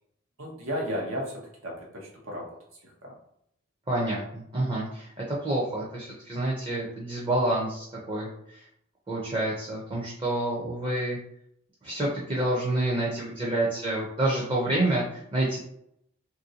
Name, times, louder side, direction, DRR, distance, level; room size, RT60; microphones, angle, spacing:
voice 1, 0.4-3.2, equal, 85° right, -2 dB, 0.9 m, -35 dB
voice 2, 3.9-8.6 9.1-11.2 11.8-15.6, right 1 dB, 25° right, -5 dB, 0.5 m, -28 dB
3.1 x 2.6 x 2.7 m, 0.74 s
head